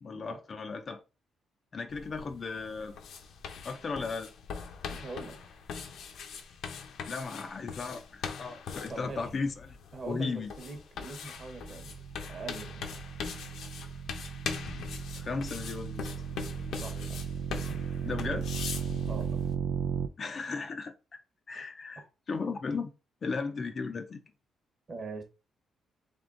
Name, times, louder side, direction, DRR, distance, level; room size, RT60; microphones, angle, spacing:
voice 1, 0.0-1.0 1.7-2.9 3.6-4.3 7.1-9.8 10.1-10.5 15.2-16.1 18.0-18.5 20.2-21.2 21.5-22.9 23.2-24.2, left 4 dB, 30° left, 0.4 m, -36 dB
sound 1, 1.9-19.5, left 6 dB, 65° left, 0.7 m, -42 dB
voice 2, 4.9-5.4 8.9-9.3 9.9-12.0 12.3-13.0 16.8-17.3 17.7-17.8 18.7-19.5 22.0-22.1 24.9-25.2, right 3 dB, 30° right, 0.9 m, -43 dB
sound 2, 11.3-20.1, right 7 dB, 85° right, 0.4 m, -36 dB
3.5 x 3.3 x 3.7 m
cardioid pair, 175°, 0 cm